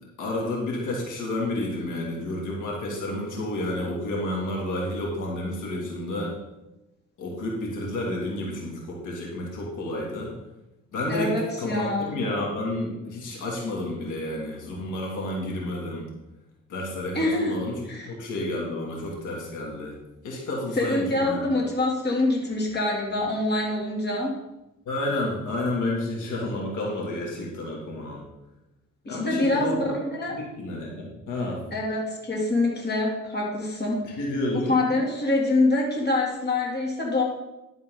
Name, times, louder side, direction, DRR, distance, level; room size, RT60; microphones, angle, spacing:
voice 1, 0.2-6.3 7.2-10.3 10.9-16.1 16.7-20.0 20.2-21.4 24.9-28.2 29.1-30.0 30.3-31.6 34.2-34.7, left 1 dB, 80° left, -2 dB, 2.8 m, -30 dB
voice 2, 11.1-12.1 17.1-17.6 17.9-18.1 20.7-24.3 29.0-30.4 31.7-34.2 34.5-37.2, left 2 dB, 35° left, -1 dB, 3.0 m, -25 dB
12.0 x 7.5 x 4.0 m, 0.96 s
cardioid pair, 90°, 30 cm